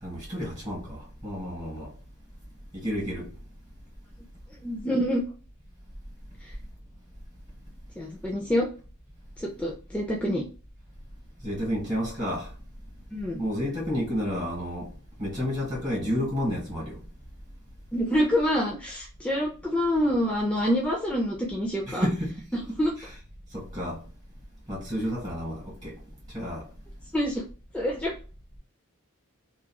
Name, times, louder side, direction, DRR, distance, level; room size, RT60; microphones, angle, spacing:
voice 1, 0.0-1.9 2.7-3.3 11.4-12.5 13.4-14.9 15.2-17.0 21.9-22.6 23.0-23.1 23.5-24.0 24.7-26.0 26.3-26.7, equal, 20° right, 1.3 m, -31 dB
voice 2, 4.6-5.2 6.4-6.5 8.0-8.7 9.4-10.4 13.1-13.4 17.9-22.1 22.8-22.9 27.1-27.5 27.7-28.1, equal, 5° left, 0.4 m, -26 dB
3.0 x 2.4 x 2.2 m
head